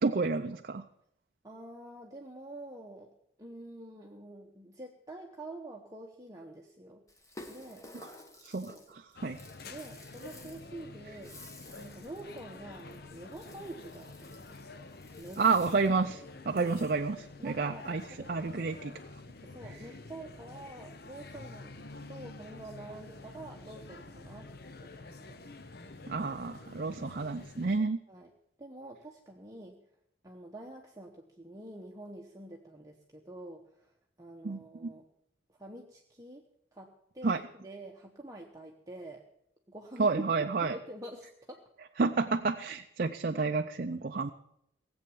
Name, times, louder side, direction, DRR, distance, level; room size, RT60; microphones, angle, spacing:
voice 1, 0.0-0.8 8.4-8.7 9.2-9.4 15.4-18.0 18.3-18.9 26.1-28.0 34.4-34.9 37.2-37.4 40.0-40.8 42.0-44.3, right 4 dB, 45° right, 5 dB, 0.5 m, -30 dB
voice 2, 1.4-3.1 3.4-7.0 7.5-7.9 8.6-8.9 9.6-11.3 11.7-14.8 15.2-15.5 16.5-16.7 17.4-18.3 19.4-24.5 24.8-25.5 28.1-28.3 28.6-29.8 30.2-35.0 35.5-36.4 36.7-39.2 39.7-40.2 40.5-41.6, right 1 dB, 15° right, 0 dB, 0.9 m, -47 dB
Rattle (instrument), 7.1-16.1, left 1 dB, 15° left, 1.2 m, -53 dB
sound 1, 9.2-27.8, left 3 dB, 50° left, 0.8 m, -48 dB
17.5 x 7.9 x 7.1 m, 0.76 s
head